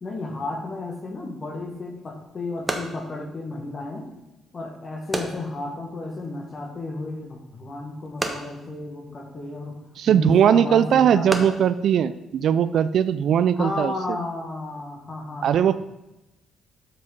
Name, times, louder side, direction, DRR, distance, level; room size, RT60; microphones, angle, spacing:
voice 1, 0.0-4.1 4.5-9.8 10.1-11.6 13.5-15.7, left 2 dB, 35° left, 2 dB, 1.7 m, -33 dB
sound 1, 1.6-13.0, right 1 dB, 10° right, 1.0 m, -37 dB
voice 2, 10.0-13.9 15.4-15.7, right 9 dB, 65° right, 14 dB, 0.3 m, -19 dB
7.8 x 6.1 x 5.2 m, 0.95 s
cardioid pair, 110°, 0 cm